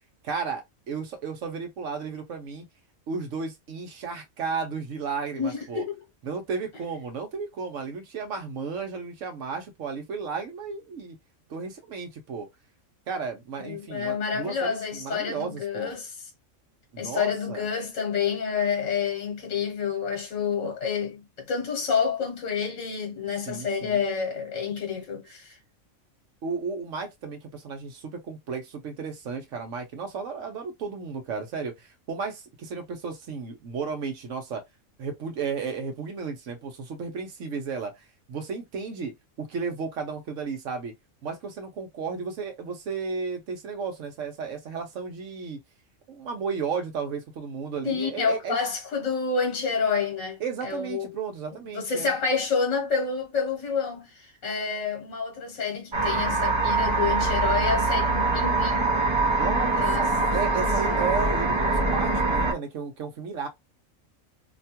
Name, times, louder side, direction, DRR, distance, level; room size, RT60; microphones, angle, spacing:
voice 1, 0.2-2.6 3.1-5.8 6.2-11.2 11.5-12.5 13.1-15.9 16.9-17.7 23.3-24.0 26.4-34.6 35.0-40.9 41.2-45.6 46.1-48.6 50.4-52.1 59.3-63.5, right 5 dB, 70° right, 1.2 m, -34 dB
voice 2, 5.4-6.0 13.6-16.1 17.0-25.6 47.8-51.1 51.7-59.0 59.8-60.1 60.6-60.7, left 6 dB, 70° left, 1.3 m, -28 dB
sound 1, 55.9-62.5, right 3 dB, 35° right, 0.5 m, -23 dB
2.9 x 2.2 x 2.8 m
omnidirectional pair, 1.4 m